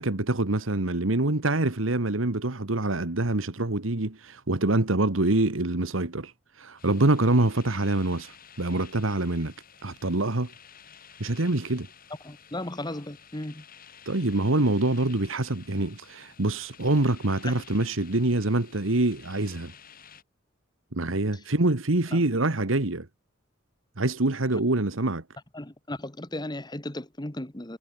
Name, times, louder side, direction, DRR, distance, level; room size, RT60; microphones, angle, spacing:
voice 1, 0.0-9.5 9.8-10.5 11.2-11.9 14.1-19.7 20.9-23.1 24.0-25.2, right 2 dB, 80° right, 1.7 m, -25 dB
sound 1, 6.8-20.2, left 7 dB, 45° left, 7.5 m, -52 dB
voice 2, 12.2-13.6 17.4-17.6 22.1-22.2 25.5-27.8, left 1 dB, 20° left, 1.7 m, -36 dB
head